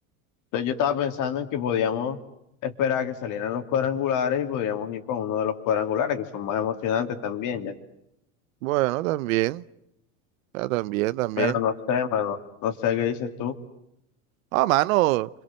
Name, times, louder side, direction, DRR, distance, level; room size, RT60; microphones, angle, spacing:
voice 1, 0.5-2.2 2.6-7.8 11.4-13.5, left 8 dB, 50° left, 3.2 m, -26 dB
voice 2, 8.6-9.6 10.5-11.6 14.5-15.3, right 18 dB, 80° right, 1.0 m, -24 dB
29.0 x 26.0 x 7.7 m
supercardioid pair, 125°, 40 cm